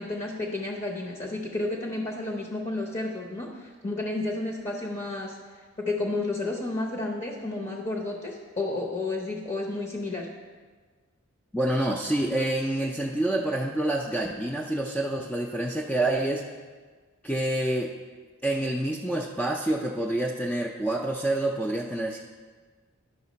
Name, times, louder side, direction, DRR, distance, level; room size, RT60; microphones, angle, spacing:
voice 1, 0.0-5.4 5.8-10.3, left 2 dB, 30° left, -1 dB, 0.8 m, -31 dB
voice 2, 11.5-16.5 17.2-17.9 18.4-22.2, right 1 dB, 5° left, -1 dB, 0.4 m, -27 dB
11.0 x 5.8 x 4.1 m, 1.5 s
head